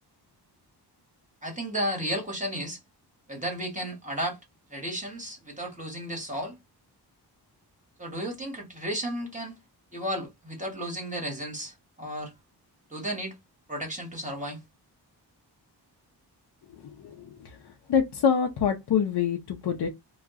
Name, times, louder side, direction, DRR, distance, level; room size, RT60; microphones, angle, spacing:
voice 1, 1.4-2.8 3.3-4.4 4.7-6.6 8.0-9.6 9.9-12.3 12.9-13.4 13.7-14.6, equal, 20° right, 1.2 m, -33 dB
voice 2, 16.7-17.6 17.9-19.9, left 7 dB, 70° left, 0.7 m, -26 dB
2.9 x 2.4 x 3.5 m
wide cardioid pair, 175°, 41 cm